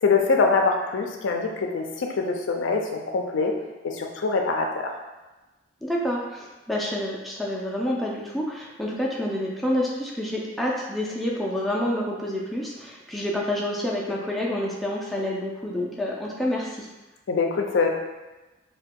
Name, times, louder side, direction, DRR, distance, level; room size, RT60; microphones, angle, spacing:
voice 1, 0.0-3.5 3.8-4.9 17.3-17.9, left 4 dB, 70° left, 2 dB, 0.4 m, -24 dB
voice 2, 5.8-16.9, left 1 dB, ahead, -4 dB, 0.4 m, -28 dB
2.7 x 2.2 x 3.5 m, 1.1 s
head